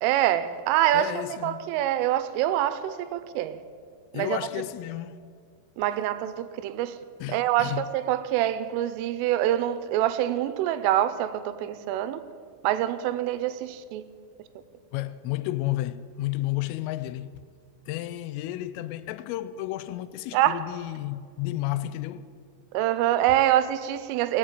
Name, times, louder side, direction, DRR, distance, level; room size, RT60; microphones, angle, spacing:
voice 1, 0.0-1.1 1.4-3.6 4.1-4.4 5.8-7.0 7.3-12.2 12.6-14.0 20.3-20.6 22.7-24.4, right 12 dB, 85° right, 3.2 m, -25 dB
voice 2, 0.9-1.6 4.1-5.2 7.2-7.8 14.9-17.3 17.9-22.3, left 15 dB, 85° left, 3.2 m, -32 dB
19.0 x 7.5 x 8.8 m
omnidirectional pair, 5.7 m